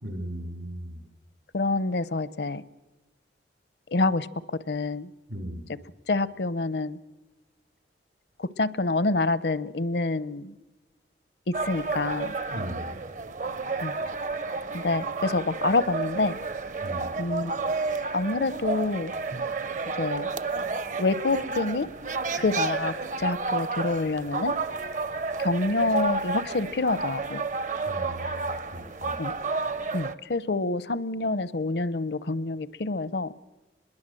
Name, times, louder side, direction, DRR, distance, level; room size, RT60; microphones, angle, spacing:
voice 1, 0.0-1.0 5.3-5.6 12.5-12.9 16.8-17.1 27.9-29.2, equal, 80° right, 5 dB, 3.6 m, -37 dB
voice 2, 1.5-2.6 3.9-4.3 4.7-5.1 6.1-7.0 8.4-10.5 11.5-12.3 13.8-13.9 14.7-16.4 17.2-17.5 18.1-19.1 20.0-20.3 21.0-21.9 22.3-24.5 25.4-27.4 29.2-29.3 29.9-33.3, left 3 dB, 65° left, 18 dB, 0.7 m, -27 dB
sound 1, 11.5-30.1, right 3 dB, 45° right, 0.7 m, -31 dB
25.0 x 21.5 x 7.6 m, 1.1 s
head